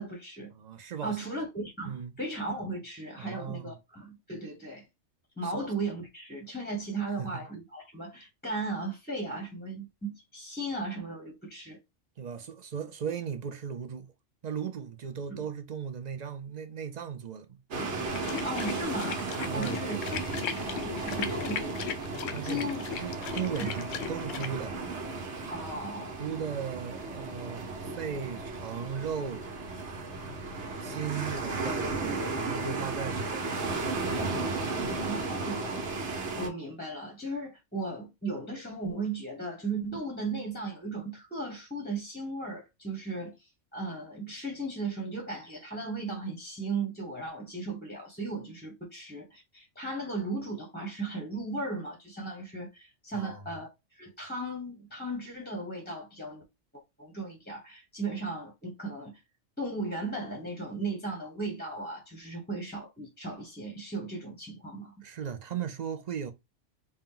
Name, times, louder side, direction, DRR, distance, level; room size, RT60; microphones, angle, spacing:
voice 1, 0.0-0.5 1.0-4.9 5.4-11.8 15.3-15.5 18.4-22.0 22.4-22.8 23.3-23.8 25.5-26.2 35.0-43.4 43.7-53.7 53.9-56.4 56.7-59.2 59.6-64.9, right 2 dB, 10° left, 0.8 m, -36 dB
voice 2, 0.5-1.2 1.8-2.2 3.2-3.7 5.4-5.6 7.2-7.4 12.2-14.1 14.4-17.6 19.5-19.9 22.3-24.7 26.2-29.5 30.8-33.6 53.1-53.5 65.0-66.3, right 7 dB, 50° right, 0.5 m, -37 dB
sound 1, 17.7-36.5, right 3 dB, 65° right, 1.2 m, -34 dB
sound 2, 18.1-24.5, left 8 dB, 80° left, 0.9 m, -37 dB
4.3 x 2.1 x 3.8 m
omnidirectional pair, 1.3 m